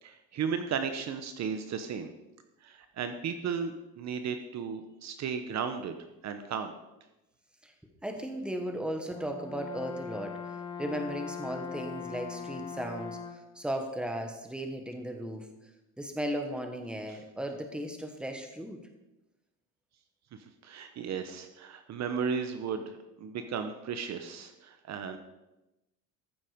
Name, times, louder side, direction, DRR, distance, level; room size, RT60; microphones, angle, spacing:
voice 1, 0.0-2.1 2.6-6.0 6.2-6.7 17.1-17.2 20.6-25.2, right 6 dB, 45° right, 8 dB, 1.0 m, -35 dB
voice 2, 8.0-10.4 10.8-13.2 13.5-15.5 16.0-18.8, right 1 dB, 5° right, 4 dB, 1.5 m, -36 dB
Brass instrument, 9.1-13.5, left 6 dB, 10° left, 1.1 m, -41 dB
14.5 x 7.3 x 5.2 m, 0.97 s
cardioid pair, 130°, 37 cm